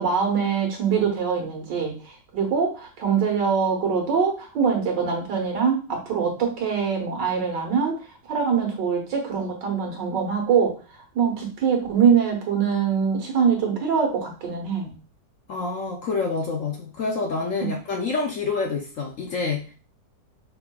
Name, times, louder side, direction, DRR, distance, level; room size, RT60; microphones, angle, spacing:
voice 1, 0.0-2.0 2.3-8.0 8.2-10.8 11.2-14.9 17.6-17.7, right 6 dB, 75° right, 2 dB, 1.9 m, -23 dB
voice 2, 15.5-19.7, left 4 dB, 60° left, 1 dB, 0.9 m, -27 dB
5.5 x 3.8 x 2.2 m, 0.35 s
omnidirectional pair, 1.9 m